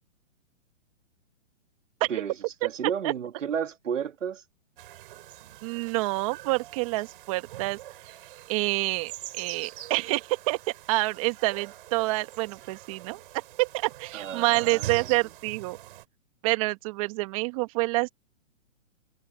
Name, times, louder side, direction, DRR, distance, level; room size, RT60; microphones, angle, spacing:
voice 1, 2.6-4.4 14.1-15.1, right 8 dB, 80° right, 2.2 m, -32 dB
sound 1, 4.8-16.1, right 14 dB, 45° right, 6.6 m, -43 dB
voice 2, 5.6-7.8 8.5-10.6 10.9-13.2 13.6-15.8 16.4-18.1, right 23 dB, 30° right, 1.6 m, -27 dB
hypercardioid pair, 160°, 37 cm